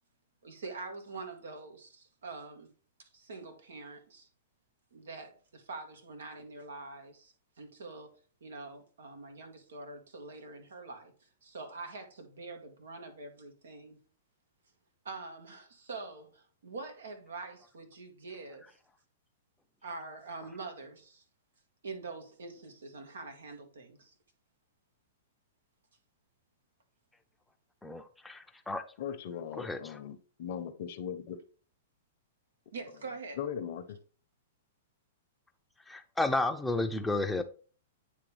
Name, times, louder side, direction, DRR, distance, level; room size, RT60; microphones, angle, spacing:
voice 1, 0.4-2.7 3.0-4.3 4.9-8.1 8.4-14.0 15.1-18.7 19.8-21.2 21.8-24.2 32.7-33.4, right 3 dB, 85° right, 1.7 m, -45 dB
voice 2, 27.8-28.8 29.5-30.0 35.9-37.4, left 2 dB, 5° left, 0.7 m, -32 dB
voice 3, 29.0-31.4 33.4-34.0, left 8 dB, 55° left, 0.8 m, -39 dB
9.2 x 3.4 x 3.3 m
hypercardioid pair, 125°, 0 cm